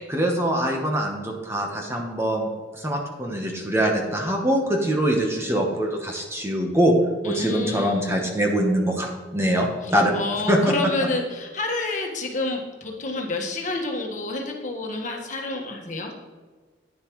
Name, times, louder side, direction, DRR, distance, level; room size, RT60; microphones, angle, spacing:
voice 1, 0.1-6.9 7.2-10.2 10.5-10.7, equal, 15° right, 1 dB, 1.0 m, -23 dB
voice 2, 7.2-7.9 9.8-16.2, left 2 dB, 40° left, 1 dB, 1.5 m, -29 dB
10.5 x 9.8 x 3.1 m, 1.4 s
head